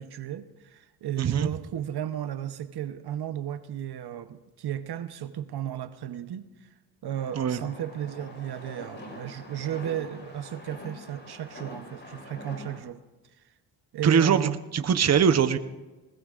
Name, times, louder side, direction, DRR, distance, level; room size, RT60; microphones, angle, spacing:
voice 1, 0.0-6.7 7.0-13.0 13.9-14.6, right 10 dB, 70° right, 11 dB, 0.9 m, -34 dB
voice 2, 1.2-1.5 7.4-7.6 14.0-15.6, right 7 dB, 40° right, 10 dB, 0.8 m, -22 dB
sound 1, 7.1-12.8, left 1 dB, 30° left, 4.5 m, -44 dB
20.5 x 20.0 x 2.5 m, 1.1 s
cardioid pair, 90°, 41 cm